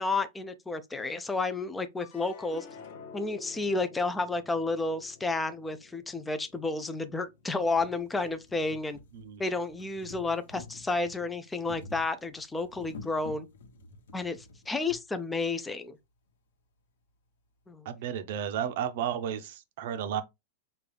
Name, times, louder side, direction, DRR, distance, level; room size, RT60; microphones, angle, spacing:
voice 1, 0.0-2.7 3.1-9.0 9.4-13.5 14.1-16.0 17.7-17.9, left 3 dB, 5° left, 0.3 m, -31 dB
sound 1, 2.0-8.4 8.9-9.6, left 5 dB, 40° left, 1.0 m, -51 dB
sound 2, 5.5-5.6 6.5-6.6 7.1-7.2 7.4-15.0 15.9-16.0 16.3-16.4, left 4 dB, 80° left, 1.1 m, -49 dB
voice 2, 17.8-20.2, right 9 dB, 45° right, 0.5 m, -33 dB
5.2 x 2.3 x 3.2 m
supercardioid pair, 180°, 0 cm